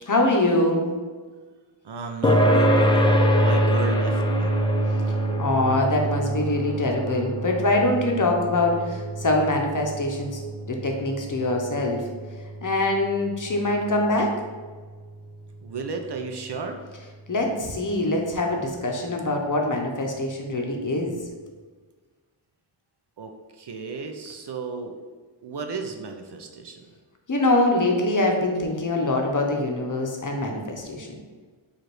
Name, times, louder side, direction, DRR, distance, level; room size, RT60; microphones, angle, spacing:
voice 1, 0.1-0.9 5.4-10.4 10.7-12.0 12.6-14.3 17.3-21.1 27.3-31.1, left 2 dB, 40° left, 1 dB, 0.7 m, -24 dB
voice 2, 1.8-4.6 15.6-16.8 23.2-25.0 25.4-26.8, right 4 dB, 55° right, 4 dB, 0.5 m, -33 dB
sound 1, 2.2-17.1, right 1 dB, 10° left, 0.4 m, -26 dB
4.8 x 2.5 x 3.0 m, 1.4 s
wide cardioid pair, 50°, 50 cm